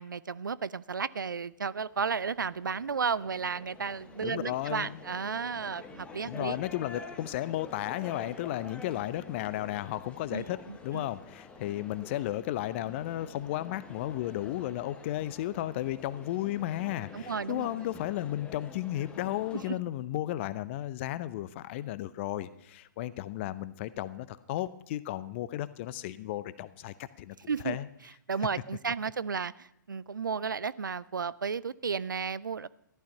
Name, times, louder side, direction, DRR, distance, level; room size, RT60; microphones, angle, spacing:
voice 1, 0.0-6.6 10.3-11.1 17.1-17.7 27.5-27.8 28.3-32.7, right 5 dB, 75° right, 20 dB, 0.4 m, -33 dB
sound 1, 1.7-19.7, left 4 dB, 10° left, 1.1 m, -49 dB
voice 2, 4.2-5.0 6.3-27.4 27.6-27.9, left 14 dB, 35° left, 16 dB, 0.6 m, -34 dB
14.0 x 11.5 x 5.5 m, 0.73 s
figure-of-eight pair, 120°, 11 cm